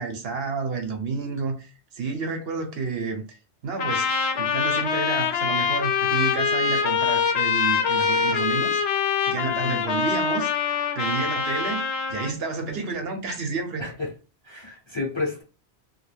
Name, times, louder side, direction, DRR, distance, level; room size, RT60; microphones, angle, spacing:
voice 1, 0.0-4.1 4.3-9.0 9.3-10.5 10.9-11.8 12.1-13.9, right 4 dB, 65° right, 0.8 m, -30 dB
Trumpet, 3.8-12.3, left 6 dB, 70° left, 0.8 m, -24 dB
voice 2, 9.5-9.8 13.8-13.9 14.5-15.4, left 3 dB, 30° left, 0.6 m, -31 dB
2.2 x 2.2 x 3.2 m
omnidirectional pair, 1.2 m